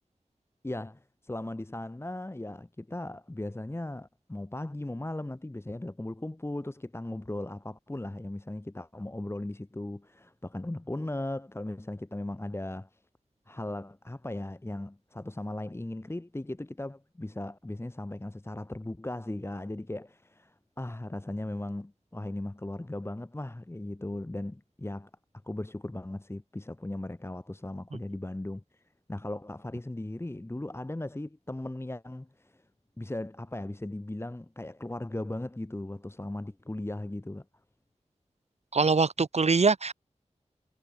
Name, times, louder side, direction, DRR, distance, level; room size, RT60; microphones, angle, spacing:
voice 1, 0.6-12.9 13.5-25.1 25.4-28.8 29.1-32.6 33.0-37.4, left 1 dB, 20° left, 1.3 m, -37 dB
voice 2, 38.7-39.9, right 4 dB, 60° right, 1.2 m, -23 dB
wide cardioid pair, 60°, 12 cm